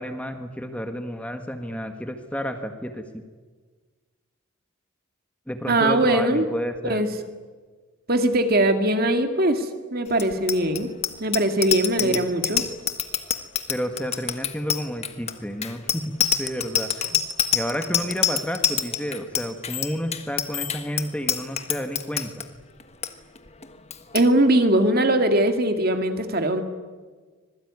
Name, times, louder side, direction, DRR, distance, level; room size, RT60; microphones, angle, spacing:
voice 1, 0.0-3.0 5.5-7.0 12.0-12.3 13.7-17.2 17.5-22.4, equal, 5° left, 6 dB, 1.6 m, -31 dB
voice 2, 5.7-6.5 6.8-7.1 8.1-10.9 11.2-12.6 24.1-26.6, right 1 dB, 45° right, 6 dB, 2.2 m, -21 dB
Bicycle bell, 10.1-22.4 22.8-23.1 23.3-23.6 23.9-24.2, left 9 dB, 30° left, 1.4 m, -26 dB
25.5 x 21.0 x 9.7 m, 1.4 s
head